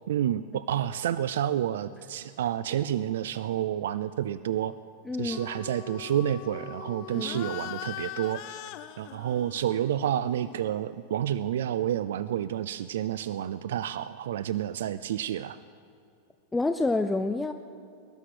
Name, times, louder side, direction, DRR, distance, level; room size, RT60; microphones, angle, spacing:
voice 1, 0.1-4.7 5.2-8.6 9.0-15.6, right 11 dB, 85° right, 15 dB, 0.4 m, -29 dB
voice 2, 5.1-5.4 7.1-7.4 16.5-17.5, left 2 dB, 5° left, 8 dB, 0.4 m, -28 dB
sound 1, 5.3-11.1, left 12 dB, 45° left, 0.7 m, -42 dB
20.0 x 11.5 x 5.0 m, 2.5 s
supercardioid pair, 155°, 0 cm